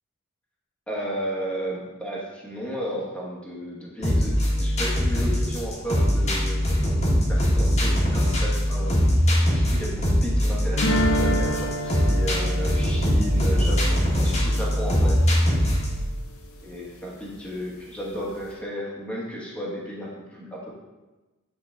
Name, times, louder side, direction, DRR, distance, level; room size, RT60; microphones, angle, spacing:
voice 1, 0.9-6.6 7.3-9.0 9.5-15.2 16.6-20.7, equal, 5° left, -4 dB, 1.3 m, -33 dB
sound 1, 4.0-16.0, equal, 30° left, 1.4 m, -22 dB
sound 2, 10.8-15.7, equal, 65° left, 0.8 m, -30 dB
8.6 x 3.9 x 3.7 m, 1.1 s
head